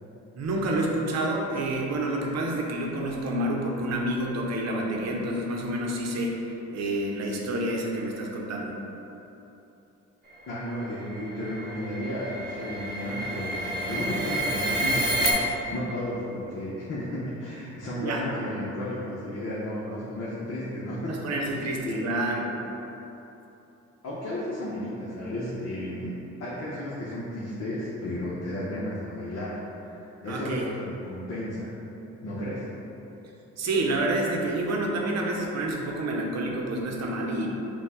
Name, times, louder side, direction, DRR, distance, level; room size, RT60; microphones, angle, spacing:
voice 1, 0.3-8.7 18.0-18.2 19.9-20.0 21.0-22.5 30.3-30.7 33.6-37.5, right 1 dB, 60° right, 0 dB, 0.7 m, -28 dB
voice 2, 10.5-22.0 24.0-31.7 32.2-32.7, left 1 dB, 55° left, -8 dB, 0.9 m, -33 dB
sound 1, 10.6-15.3, right 1 dB, 30° right, 0.9 m, -30 dB
5.5 x 2.3 x 3.6 m, 3.0 s
cardioid pair, 90°, 30 cm